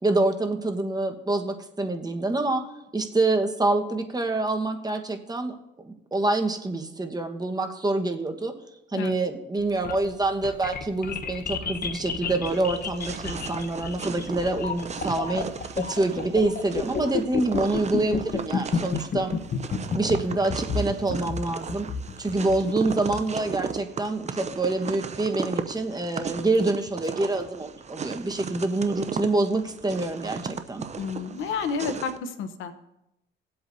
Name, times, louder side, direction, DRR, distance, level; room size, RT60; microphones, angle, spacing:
voice 1, 0.0-2.6 2.9-5.5 5.8-8.5 8.9-15.5 15.7-19.3 19.9-21.9 22.2-30.8, right 2 dB, 20° right, 4 dB, 1.3 m, -26 dB
sound 1, 9.6-23.7, left 5 dB, 50° left, 1.0 m, -31 dB
sound 2, 12.4-32.2, right 6 dB, 35° right, 0.7 m, -36 dB
voice 2, 31.0-32.7, left 6 dB, 90° left, 9 dB, 1.0 m, -30 dB
19.5 x 7.9 x 2.7 m, 0.88 s
cardioid pair, 90°, 20 cm